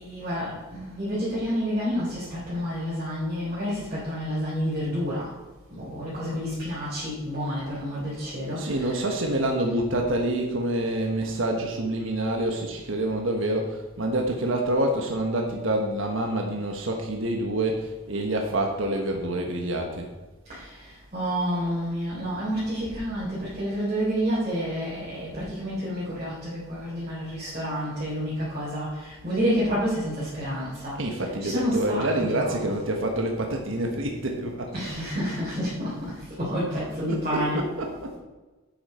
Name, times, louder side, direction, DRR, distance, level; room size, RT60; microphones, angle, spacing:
voice 1, 0.0-5.3 5.8-9.0 20.5-20.6 21.1-30.9 31.4-32.6 34.7-36.1 36.4-37.6, equal, 35° right, -9 dB, 3.7 m, -29 dB
voice 2, 8.6-20.1 31.0-34.7 36.7-38.2, right 1 dB, 65° right, 2 dB, 1.3 m, -27 dB
10.5 x 8.7 x 4.4 m, 1.2 s
head